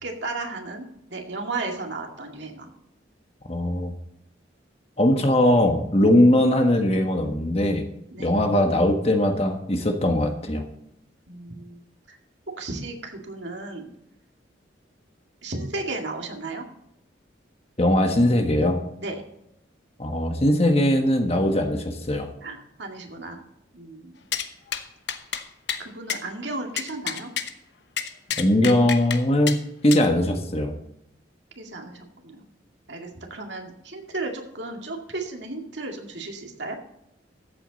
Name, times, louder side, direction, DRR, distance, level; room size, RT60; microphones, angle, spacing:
voice 1, 0.0-2.7 8.1-8.4 11.3-11.8 12.1-12.2 12.6-13.9 15.4-16.6 19.0-19.2 22.4-23.4 23.7-24.2 25.8-27.3 31.6-32.4 32.9-36.8, right 3 dB, 70° right, 2 dB, 2.2 m, -34 dB
voice 2, 3.5-3.9 5.0-7.8 8.2-10.6 17.8-18.8 20.0-22.3 28.4-30.8, left 1 dB, 30° left, 5 dB, 1.4 m, -20 dB
sound 1, 24.3-24.5 24.7-24.8 25.1-25.4 25.7-25.8 26.1-26.2 26.8-27.5 28.0-29.2 29.5-29.6 29.9-30.1, left 8 dB, 65° left, 1.0 m, -29 dB
14.0 x 8.4 x 4.1 m, 0.81 s
head